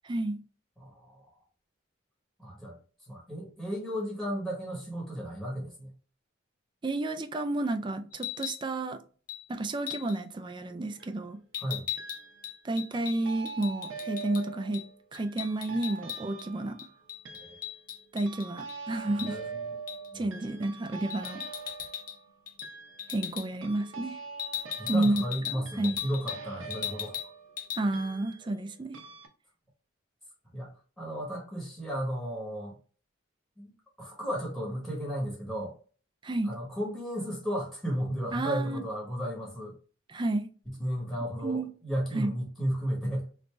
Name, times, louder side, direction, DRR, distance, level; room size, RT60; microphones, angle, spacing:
voice 1, 0.0-0.4 6.8-9.0 9.5-11.4 12.6-14.8 15.1-16.8 18.1-19.4 20.1-21.4 23.1-24.2 24.9-26.0 27.8-29.0 36.2-36.5 38.3-38.8 40.1-40.5 41.4-41.7 42.1-42.3, right 2 dB, 25° right, 0.3 m, -31 dB
voice 2, 0.8-1.2 2.4-2.8 3.1-5.9 11.6-11.9 19.3-19.6 20.1-20.3 24.8-27.2 30.5-32.8 33.6-33.7 34.0-35.7 36.4-39.7 40.7-43.3, equal, ahead, 1.0 m, -34 dB
sound 1, 8.1-8.6 9.3-9.4 9.9-10.2 11.5-14.4 14.7-14.9 15.1-16.5 16.8-18.8 19.2-19.3 19.9-20.1 21.1-22.2 22.5-22.7 23.0-23.5 24.4-26.4 26.7-27.3 27.6-27.8, left 10 dB, 45° left, 0.6 m, -38 dB
sound 2, 10.7-11.2 12.0-12.6 12.9-28.7 28.9-29.3, right 4 dB, 80° right, 0.7 m, -44 dB
3.2 x 2.6 x 3.1 m
head